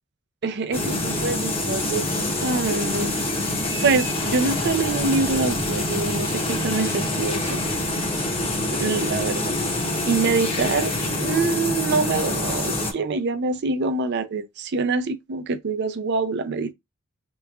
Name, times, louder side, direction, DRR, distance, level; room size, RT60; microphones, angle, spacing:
voice 1, 0.4-3.1 3.8-7.6 8.7-9.6 10.1-16.7, right 3 dB, 50° right, 0.5 m, -25 dB
sound 1, 0.7-12.9, left 1 dB, 25° left, 0.8 m, -26 dB
3.4 x 2.9 x 2.3 m
head